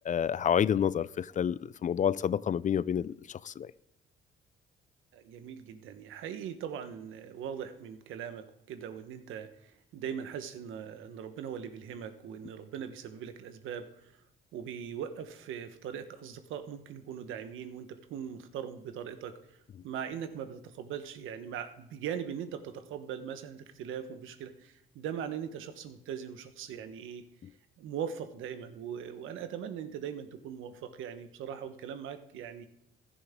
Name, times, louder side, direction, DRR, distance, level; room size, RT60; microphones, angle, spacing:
voice 1, 0.0-3.7 27.4-27.5, left 8 dB, 40° left, 0.4 m, -29 dB
voice 2, 5.1-14.1 14.5-19.6 19.8-27.3 27.8-32.7, right 8 dB, 85° right, 1.1 m, -40 dB
16.0 x 11.0 x 3.6 m
cardioid pair, 90°, 20 cm